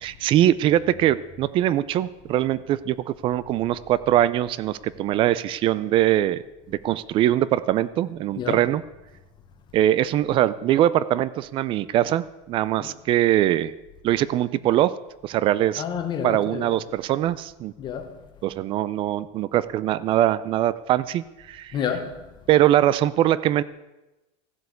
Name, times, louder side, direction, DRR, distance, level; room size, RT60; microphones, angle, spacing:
voice 1, 0.0-8.8 9.7-13.7 14.0-14.9 15.2-15.8 16.2-17.7 18.4-21.7 22.5-23.6, right 12 dB, 30° right, 0.5 m, -22 dB
voice 2, 8.4-8.7 12.8-12.9 15.8-16.8 17.8-18.3 21.7-22.3, left 7 dB, 30° left, 1.1 m, -30 dB
15.0 x 7.9 x 8.4 m
supercardioid pair, 165°, 16 cm